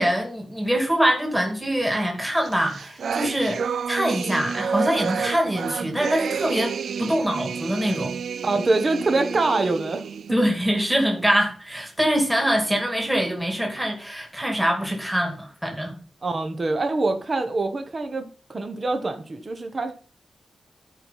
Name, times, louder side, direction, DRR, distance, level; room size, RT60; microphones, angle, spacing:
voice 1, 0.0-3.6 3.9-8.1 10.3-15.9, equal, 5° right, 2.3 m, -24 dB
sound 1, 2.4-10.3, right 6 dB, 75° right, 0.4 m, -30 dB
voice 2, 8.4-10.0 16.2-19.9, right 3 dB, 35° right, 1.2 m, -24 dB
12.0 x 4.7 x 5.7 m
wide cardioid pair, 120°, 0 cm